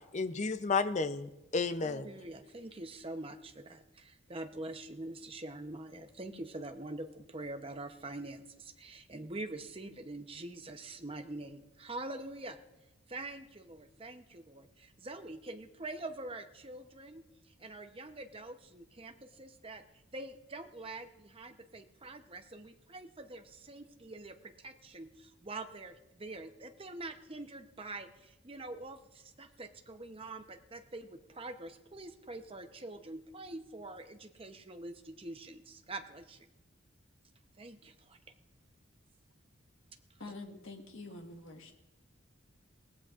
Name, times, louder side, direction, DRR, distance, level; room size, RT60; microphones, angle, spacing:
voice 1, 0.0-2.1, left 4 dB, 35° left, 11 dB, 0.6 m, -32 dB
voice 2, 1.8-12.6 13.1-19.8 20.1-36.5 37.6-38.2 40.2-40.3, right 2 dB, 25° right, 6 dB, 0.8 m, -45 dB
voice 3, 40.2-41.7, left 2 dB, 70° left, 3 dB, 1.6 m, -46 dB
23.0 x 18.0 x 2.5 m, 0.96 s
head